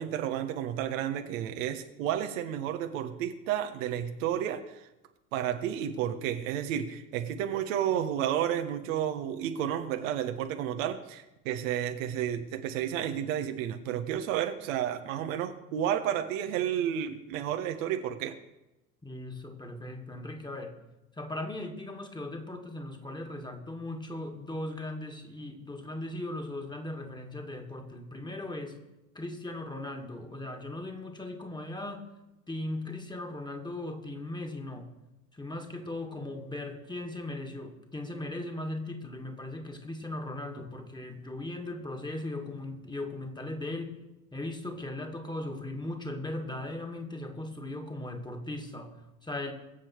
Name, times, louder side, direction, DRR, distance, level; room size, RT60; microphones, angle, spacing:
voice 1, 0.0-4.8 5.3-18.3, right 10 dB, 60° right, 6 dB, 1.4 m, -31 dB
voice 2, 19.0-20.8 21.2-28.8 29.1-32.1 32.5-34.9 35.3-44.0 44.3-49.5, left 1 dB, 10° left, 4 dB, 2.2 m, -38 dB
21.5 x 7.7 x 4.7 m, 0.95 s
figure-of-eight pair, 70°, 43 cm